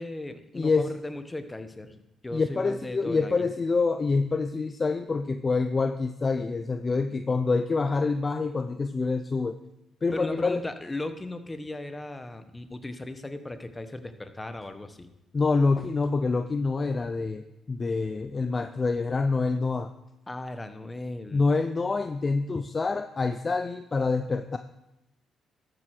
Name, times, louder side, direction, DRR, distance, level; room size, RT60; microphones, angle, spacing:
voice 1, 0.0-3.3 10.1-15.1 20.3-21.4, left 2 dB, 15° left, 9 dB, 1.2 m, -37 dB
voice 2, 0.5-0.9 2.3-9.6 10.0-10.6 15.3-19.9 21.3-24.6, left 4 dB, 30° left, 9 dB, 0.6 m, -26 dB
13.0 x 7.8 x 6.0 m, 0.91 s
cardioid pair, 90°, 0 cm